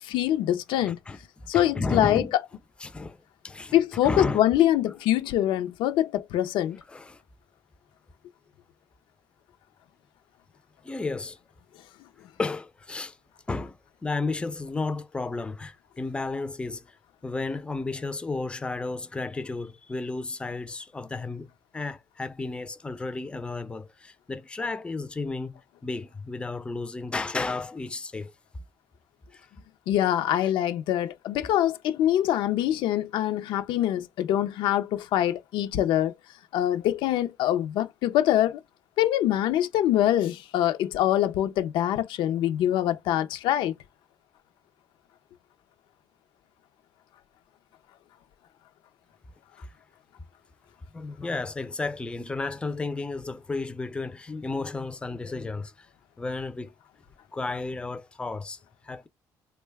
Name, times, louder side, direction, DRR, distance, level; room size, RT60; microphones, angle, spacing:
voice 1, 0.1-1.0 1.5-2.2 3.7-6.8 29.9-36.1 36.5-38.6 39.0-43.7, left 12 dB, 80° left, 0.4 m, -24 dB
voice 2, 0.8-2.3 2.8-4.4 6.9-7.2 10.8-11.4 12.4-13.2 13.5-17.0 17.2-28.3 29.3-29.5 30.4-30.5 49.6-49.7 50.9-55.9 56.2-56.7 57.3-59.1, left 3 dB, 10° left, 0.4 m, -33 dB
3.7 x 2.1 x 3.4 m
cardioid pair, 105°, 8 cm